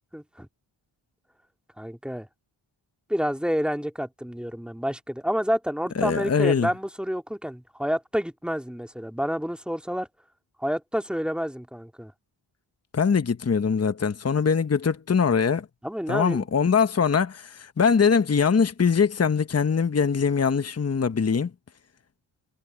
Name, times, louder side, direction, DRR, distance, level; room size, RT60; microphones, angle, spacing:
voice 1, 0.1-0.5 1.8-2.3 3.1-10.1 10.6-12.1 15.8-16.5, equal, ahead, 2.2 m, -29 dB
voice 2, 6.0-6.7 12.9-15.7 16.1-21.5, left 6 dB, 30° left, 1.0 m, -22 dB
cardioid pair, 70°, 47 cm